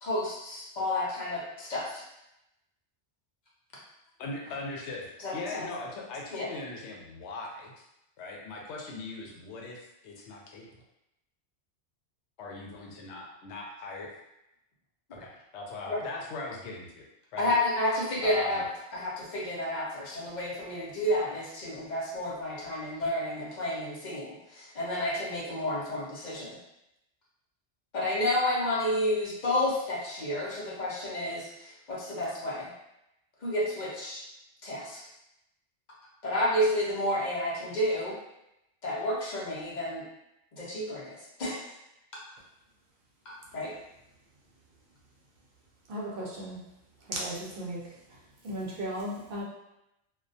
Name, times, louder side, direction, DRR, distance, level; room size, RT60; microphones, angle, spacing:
voice 1, 0.0-2.0 5.2-5.7 6.3-6.5 15.9-16.0 17.4-18.6 18.9-26.6 27.9-32.7 33.4-34.2 34.6-35.0 36.2-38.1 38.8-40.0 40.5-41.7 43.3-43.7, left 1 dB, 50° left, -5 dB, 0.7 m, -30 dB
voice 2, 4.2-7.9 8.2-10.8 12.4-14.2 15.1-17.0 17.3-17.5 18.2-18.6, left 3 dB, 85° left, -1 dB, 0.9 m, -40 dB
voice 3, 45.9-46.6 47.1-48.0 48.4-49.4, right 1 dB, 60° right, -4 dB, 0.7 m, -35 dB
2.2 x 2.1 x 2.6 m, 0.87 s
omnidirectional pair, 1.1 m